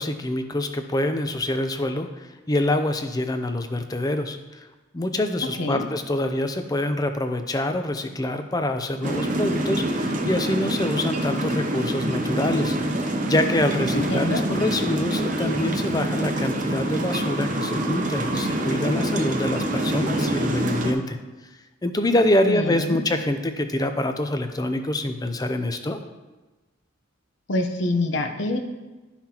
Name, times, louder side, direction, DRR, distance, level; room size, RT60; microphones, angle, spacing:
voice 1, 0.0-4.4 4.9-12.8 13.0-21.2 21.8-26.0, left 1 dB, 20° left, 7 dB, 0.5 m, -25 dB
sound 1, 9.0-20.9, right 1 dB, 40° right, 0.8 m, -26 dB
voice 2, 13.9-14.4 22.4-23.0 27.5-28.6, left 1 dB, 60° left, 5 dB, 0.8 m, -25 dB
12.0 x 5.7 x 2.9 m, 1.2 s
head